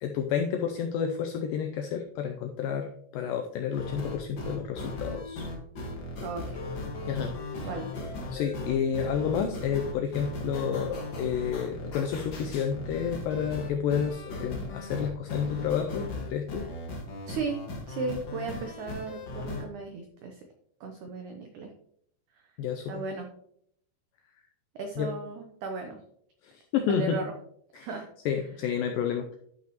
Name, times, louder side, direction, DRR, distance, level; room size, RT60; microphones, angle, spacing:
voice 1, 0.0-5.4 7.0-7.7 8.3-16.6 22.6-23.0 25.0-25.1 26.4-27.2 27.7-27.9 28.3-29.4, left 7 dB, 85° left, 5 dB, 1.9 m, -30 dB
sound 1, 3.7-19.6, left 2 dB, 65° left, 1.1 m, -37 dB
voice 2, 6.2-6.6 7.6-7.9 17.3-17.6 17.9-20.4 20.8-21.7 22.3-22.4 22.9-23.3 24.8-26.0 26.8-27.3 27.7-28.1, right 4 dB, 85° right, 4 dB, 1.7 m, -36 dB
12.5 x 5.7 x 2.9 m, 0.67 s
omnidirectional pair, 4.6 m